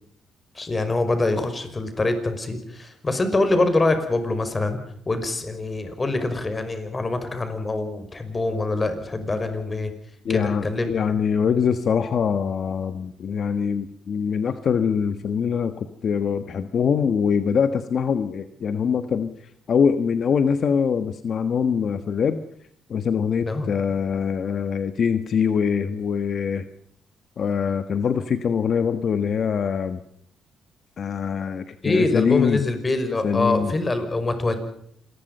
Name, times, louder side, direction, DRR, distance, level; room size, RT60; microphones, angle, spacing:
voice 1, 0.6-9.9 10.3-10.9 23.4-23.7 31.8-34.6, left 2 dB, 25° left, 9 dB, 5.5 m, -24 dB
voice 2, 10.2-19.4 19.7-22.4 22.9-26.6 27.4-30.0 31.0-32.6 33.2-33.7, left 6 dB, 55° left, 10 dB, 1.4 m, -23 dB
27.0 x 20.5 x 5.6 m, 0.67 s
cardioid pair, 90°, 0 cm